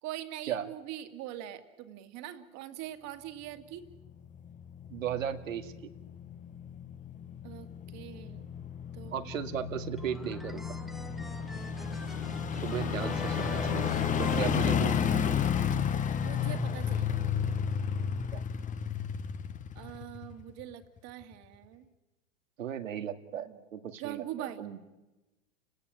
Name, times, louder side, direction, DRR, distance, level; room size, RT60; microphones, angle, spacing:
voice 1, 0.0-3.8 7.4-7.7 7.9-8.5 8.9-9.3 12.7-13.9 16.2-17.2 19.8-21.9 23.4-23.6 24.0-24.6, right 12 dB, 40° right, 8 dB, 2.3 m, -43 dB
sound 1, 4.1-20.6 21.0-21.1, left 7 dB, 20° left, 1.1 m, -32 dB
voice 2, 4.9-5.9 9.1-10.8 12.6-13.9 14.2-15.4 18.3-18.4 22.6-24.8, right 9 dB, 80° right, 8 dB, 2.1 m, -36 dB
sound 2, 10.0-15.4, equal, ahead, 1.0 m, -45 dB
29.5 x 18.0 x 8.9 m, 1.1 s
hypercardioid pair, 115°, 39 cm